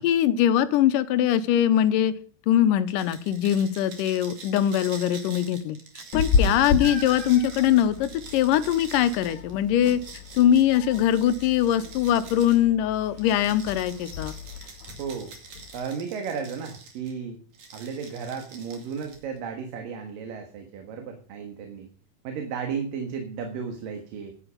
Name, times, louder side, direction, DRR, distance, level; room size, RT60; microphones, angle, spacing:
voice 1, 0.0-2.1 2.5-5.8 6.1-10.0 10.3-14.3, left 11 dB, 80° left, 12 dB, 2.4 m, -22 dB
sound 1, 2.9-12.6 13.2-17.1 17.5-19.4, right 5 dB, 60° right, 3.7 m, -45 dB
Meow, 6.1-15.8, left 5 dB, 60° left, 3.2 m, -32 dB
voice 2, 6.3-6.7 15.0-15.3 15.7-17.4 17.7-21.9 22.2-24.3, right 6 dB, 75° right, 4 dB, 3.3 m, -34 dB
11.0 x 10.0 x 5.1 m, 0.43 s
omnidirectional pair, 4.0 m